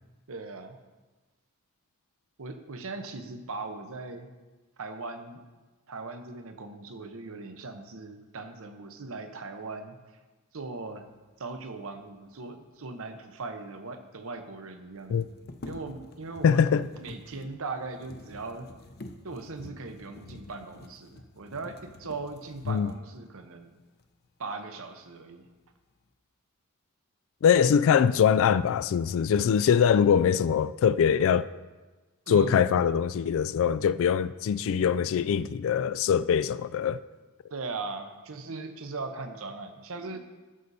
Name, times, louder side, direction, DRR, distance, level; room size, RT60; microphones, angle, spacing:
voice 1, 0.3-0.8 2.4-4.3 4.8-5.4 5.9-10.0 10.5-11.0 11.4-15.2 15.7-18.7 19.2-23.8 24.4-25.5 32.3-32.8 37.5-40.2, right 3 dB, 65° right, 0.9 m, -39 dB
sound 1, 13.5-13.6 13.8-13.9 14.9-23.3 24.0-24.1 24.6-25.2 25.5-26.1, left 2 dB, 45° left, 0.7 m, -48 dB
voice 2, 16.4-16.9 22.7-22.9 27.4-31.5 32.3-37.0, left 7 dB, 60° left, 0.3 m, -23 dB
12.5 x 6.6 x 4.2 m
head